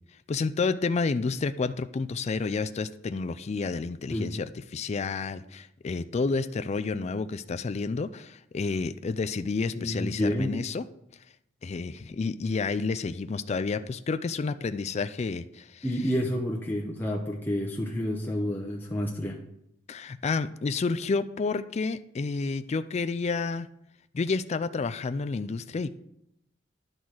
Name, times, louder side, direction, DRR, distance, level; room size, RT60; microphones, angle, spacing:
voice 1, 0.3-10.8 11.6-15.9 19.9-23.7 24.1-25.9, left 4 dB, 35° left, 11 dB, 0.4 m, -30 dB
voice 2, 9.7-10.6 15.8-19.4, equal, 10° left, -2 dB, 0.8 m, -29 dB
10.5 x 3.9 x 6.2 m, 0.79 s
head